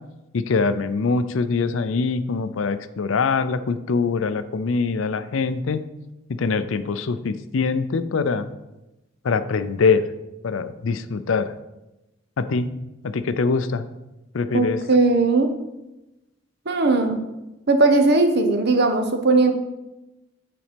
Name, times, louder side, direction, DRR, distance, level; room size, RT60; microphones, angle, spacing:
voice 1, 0.3-5.8 6.3-8.5 9.2-10.0 10.4-11.5 12.4-12.7 13.0-13.8 14.3-14.8, left 4 dB, 65° left, 12 dB, 0.5 m, -23 dB
voice 2, 14.5-15.5 16.7-17.2 17.7-19.5, right 3 dB, 50° right, 6 dB, 0.9 m, -18 dB
9.0 x 4.1 x 5.1 m, 0.98 s
head